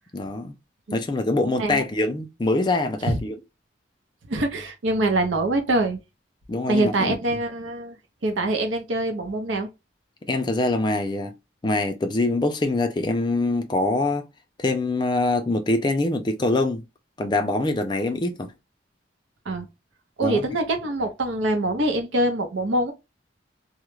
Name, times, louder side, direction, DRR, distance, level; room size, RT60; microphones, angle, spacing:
voice 1, 0.1-0.5 0.9-3.4 6.5-7.2 10.3-11.3 11.6-14.3 14.6-16.8 17.2-18.5 20.2-20.4, left 2 dB, 25° left, 0.3 m, -24 dB
voice 2, 4.3-6.0 6.7-8.0 8.2-9.7 19.5-19.7 20.2-22.9, right 1 dB, 85° right, 0.6 m, -24 dB
2.3 x 2.0 x 3.0 m
head